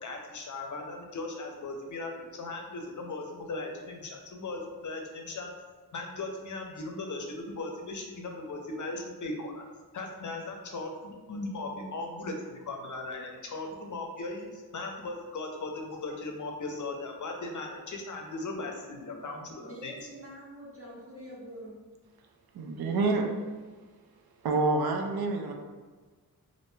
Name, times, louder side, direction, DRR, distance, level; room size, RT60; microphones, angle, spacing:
voice 1, 0.0-5.5 5.9-9.6 9.9-19.9, left 2 dB, 50° left, 2 dB, 0.5 m, -38 dB
voice 2, 19.6-21.7, equal, 35° right, -6 dB, 0.7 m, -45 dB
voice 3, 22.5-23.3 24.4-25.5, right 3 dB, 70° right, 3 dB, 0.5 m, -27 dB
2.5 x 2.1 x 3.1 m, 1.4 s
wide cardioid pair, 80°, 39 cm